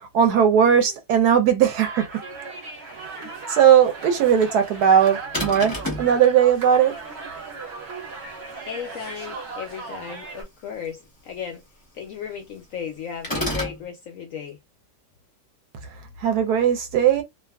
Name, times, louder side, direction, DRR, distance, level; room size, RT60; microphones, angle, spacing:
voice 1, 0.1-2.2 3.5-6.9 16.2-17.2, right 8 dB, 75° right, 1.1 m, -18 dB
sound 1, 1.8-10.4, right 4 dB, 50° right, 0.8 m, -37 dB
sound 2, 5.3-6.1 13.2-13.8, left 1 dB, 20° left, 0.5 m, -28 dB
voice 2, 8.7-11.6 11.9-14.6, left 7 dB, 70° left, 0.7 m, -35 dB
2.6 x 2.3 x 2.2 m
omnidirectional pair, 1.8 m